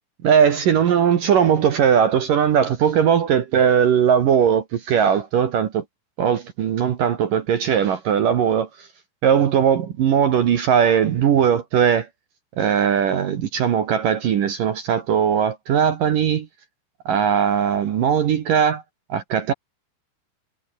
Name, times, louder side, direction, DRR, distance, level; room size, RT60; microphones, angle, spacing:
voice 1, 0.2-5.8 6.2-8.9 9.2-12.1 12.6-16.5 17.1-18.8 19.1-19.5, right 8 dB, 60° right, 2.4 m, -19 dB
omnidirectional pair, 5.9 m